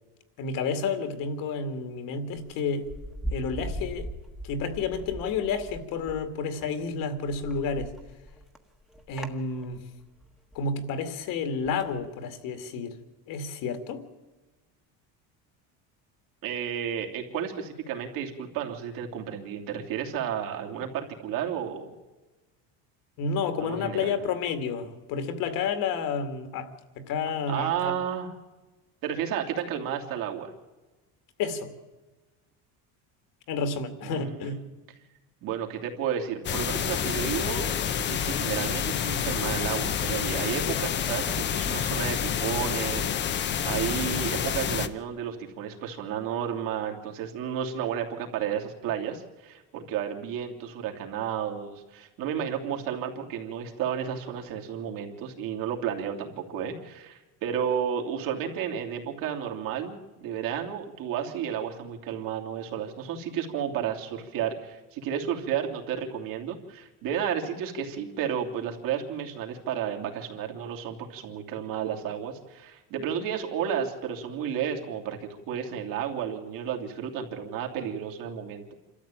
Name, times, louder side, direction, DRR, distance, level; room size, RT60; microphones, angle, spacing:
voice 1, 0.4-2.9 3.3-4.1 4.4-7.9 9.1-9.8 10.5-13.0 13.3-14.0 23.2-26.7 27.0-27.9 31.4-31.7 33.5-34.6, left 5 dB, 60° left, 9 dB, 2.3 m, -30 dB
sound 1, 2.4-6.2 6.5-10.6 11.6-12.1, equal, ahead, 1.4 m, -39 dB
voice 2, 16.4-21.9 23.6-24.2 27.5-28.3 29.0-30.5 34.0-34.7 35.4-37.7 38.0-78.7, right 8 dB, 65° right, 2 dB, 3.1 m, -32 dB
sound 2, 36.4-44.9, left 8 dB, 30° left, 0.8 m, -28 dB
27.0 x 13.5 x 8.9 m, 1.2 s
cardioid pair, 165°, 37 cm